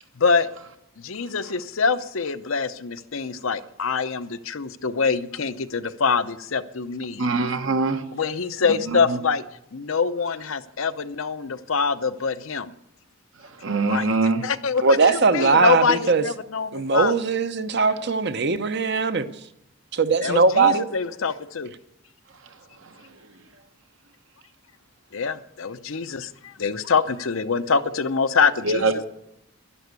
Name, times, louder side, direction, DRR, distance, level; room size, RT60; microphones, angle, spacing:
voice 1, 0.2-0.5 1.0-7.2 8.1-9.4 9.7-12.7 13.9-14.1 14.4-15.0 15.3-17.1 20.2-21.7 25.1-29.0, left 5 dB, 70° left, 0.7 m, -25 dB
voice 2, 7.2-8.0 8.9-9.2 13.6-14.4 28.6-29.0, right 3 dB, 70° right, 1.3 m, -23 dB
voice 3, 14.8-16.2 16.7-19.3 19.9-20.9, right 4 dB, 55° right, 0.8 m, -20 dB
11.5 x 11.5 x 8.2 m
head